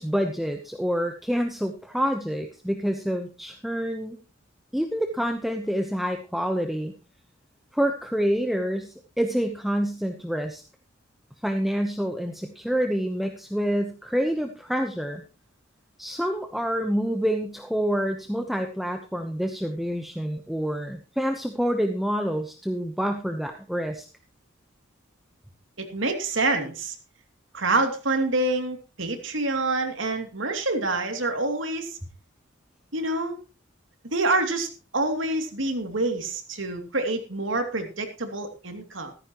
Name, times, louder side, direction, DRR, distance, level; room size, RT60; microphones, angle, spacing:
voice 1, 0.0-4.2 4.7-6.9 7.7-10.6 11.4-15.2 16.0-24.0, equal, ahead, 4 dB, 0.9 m, -27 dB
voice 2, 25.8-26.9 27.5-32.0 32.9-33.4 34.1-39.1, right 2 dB, 80° right, 5 dB, 2.7 m, -27 dB
14.5 x 14.0 x 3.0 m, 0.32 s
head